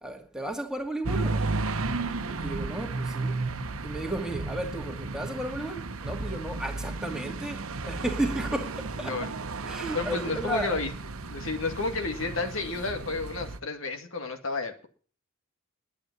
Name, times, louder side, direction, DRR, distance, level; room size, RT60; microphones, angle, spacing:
voice 1, 0.0-1.5 2.2-3.4 3.8-9.2 9.6-10.8, right 1 dB, 5° right, 2.2 m, -33 dB
sound 1, 1.0-13.6, right 3 dB, 80° right, 1.0 m, -33 dB
voice 2, 9.0-9.3 9.9-10.9 11.3-14.9, left 3 dB, 70° left, 2.0 m, -31 dB
11.0 x 8.6 x 9.4 m
head